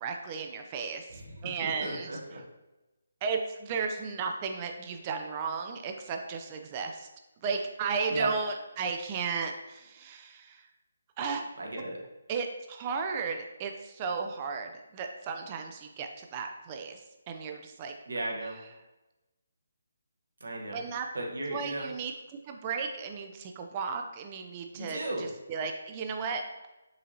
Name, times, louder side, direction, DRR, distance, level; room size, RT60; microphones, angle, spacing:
voice 1, 0.0-1.1 1.4-2.4 3.2-7.1 7.4-10.7 11.2-11.5 12.3-17.0 17.3-17.9 20.7-21.1 21.5-22.1 22.5-26.7, right 5 dB, 25° right, 4 dB, 0.3 m, -34 dB
voice 2, 1.1-2.4 8.1-8.3 11.6-12.0 18.1-18.6 20.4-20.8 21.1-21.9 24.7-25.3, right 2 dB, 65° right, -1 dB, 1.1 m, -35 dB
5.4 x 2.8 x 2.7 m, 1.0 s
figure-of-eight pair, 145°, 0 cm